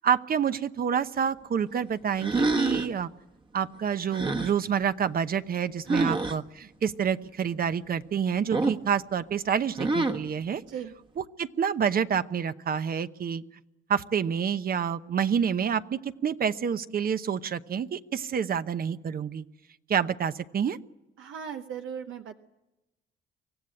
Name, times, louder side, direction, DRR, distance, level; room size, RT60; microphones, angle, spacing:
voice 1, 0.0-3.1 3.5-10.6 11.2-13.4 13.9-19.4 19.9-20.8, right 7 dB, 50° right, 12 dB, 0.9 m, -28 dB
sound 1, 2.2-3.0 4.1-4.5 5.9-6.4 8.5-8.9 9.8-10.3, right 2 dB, 25° right, 1.2 m, -26 dB
voice 2, 5.9-6.2 10.7-10.9 21.2-22.4, right 8 dB, 80° right, 5 dB, 1.1 m, -38 dB
24.5 x 16.0 x 9.9 m, 1.0 s
cardioid pair, 90°, 20 cm